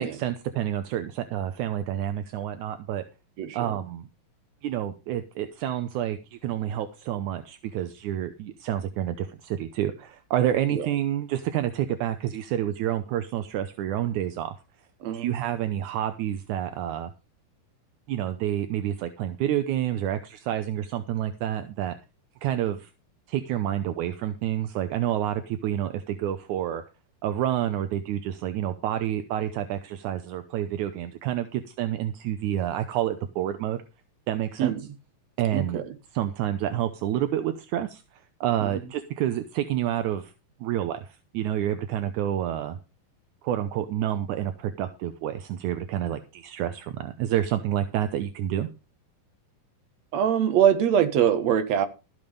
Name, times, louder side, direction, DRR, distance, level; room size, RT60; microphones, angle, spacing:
voice 1, 0.0-3.0 3.5-4.1 4.6-14.6 15.1-17.1 18.1-21.9 22.4-22.9 23.3-26.8 27.2-33.8 34.3-34.7 35.4-35.8 36.1-38.0 38.4-40.3 40.6-42.8 43.4-48.7, right 11 dB, 75° right, 1.9 m, -28 dB
voice 2, 3.4-3.7 10.7-10.9 15.0-15.3 34.6-34.9 35.5-35.8 38.6-38.7 50.1-51.9, right 9 dB, 60° right, 2.2 m, -23 dB
14.0 x 7.2 x 5.4 m
omnidirectional pair, 4.2 m